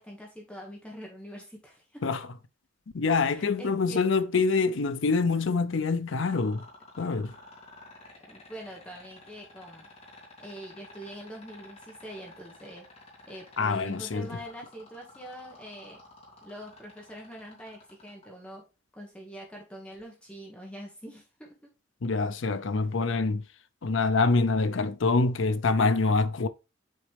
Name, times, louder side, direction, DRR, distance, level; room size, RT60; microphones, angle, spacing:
voice 1, 0.0-2.2 3.2-4.0 8.2-9.9 10.4-12.9 13.3-16.0 16.4-18.6 18.9-21.5, right 1 dB, 5° left, 1.3 m, -44 dB
voice 2, 2.9-6.7 7.0-7.3 13.6-14.4 22.0-23.4 23.8-26.5, left 4 dB, 65° left, 0.6 m, -25 dB
sound 1, 6.1-18.3 19.9-20.0, left 3 dB, 30° left, 2.7 m, -51 dB
7.7 x 4.0 x 3.4 m
head